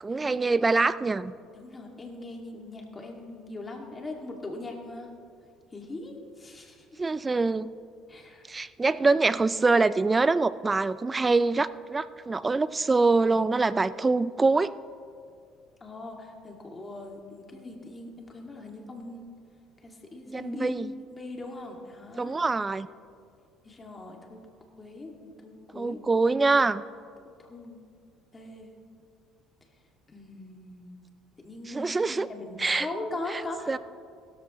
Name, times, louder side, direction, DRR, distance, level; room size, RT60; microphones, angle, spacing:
voice 1, 0.0-1.3 7.0-7.7 8.5-14.7 20.3-20.9 22.2-22.9 25.8-26.8 31.7-32.3 32.6-32.9 33.7-33.8, right 3 dB, 20° right, 17 dB, 0.4 m, -24 dB
voice 2, 1.5-5.1 5.7-7.0 8.1-8.4 15.8-19.2 19.8-20.7 21.1-22.3 23.6-24.5 24.8-26.0 27.4-27.8 28.3-28.7 30.1-31.0 31.4-33.8, left 2 dB, 25° left, 1 dB, 2.2 m, -40 dB
16.5 x 13.5 x 3.1 m, 2.3 s
cardioid pair, 100°, 0 cm